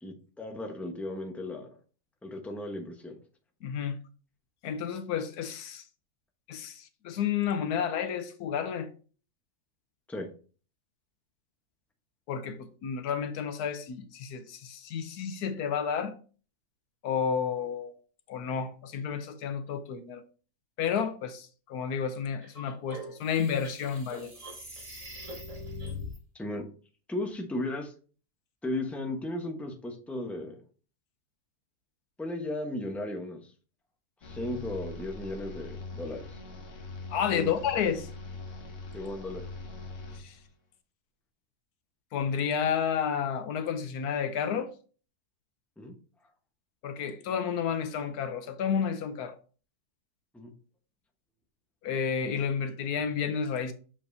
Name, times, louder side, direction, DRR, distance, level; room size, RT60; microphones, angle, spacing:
voice 1, 0.0-1.7 2.2-3.2 10.1-10.3 26.3-26.7 27.1-27.9 28.6-30.6 32.2-33.5 34.2-36.4 37.3-37.5 38.9-39.5 45.8-45.9 50.3-50.5, left 1 dB, ahead, 0.9 m, -35 dB
voice 2, 3.6-4.0 4.6-5.8 6.5-8.9 12.3-16.1 17.0-17.9 18.3-20.2 20.8-24.3 37.1-38.1 40.1-40.4 42.1-44.7 46.8-49.4 51.8-53.7, left 7 dB, 90° left, 1.3 m, -31 dB
sound 1, 22.4-26.2, left 2 dB, 25° right, 1.5 m, -42 dB
sound 2, 34.2-40.5, left 3 dB, 55° left, 1.4 m, -42 dB
7.1 x 5.3 x 2.7 m
omnidirectional pair, 1.6 m